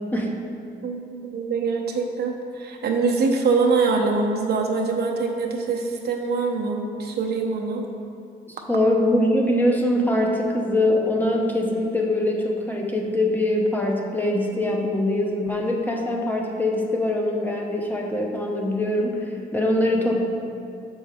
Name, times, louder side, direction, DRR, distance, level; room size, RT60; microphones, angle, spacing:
voice 1, 0.8-7.8, right 4 dB, 55° right, 1 dB, 0.8 m, -24 dB
voice 2, 8.5-20.2, left 1 dB, 10° left, -1 dB, 0.8 m, -23 dB
6.2 x 5.3 x 3.5 m, 2.5 s
cardioid pair, 90°, 20 cm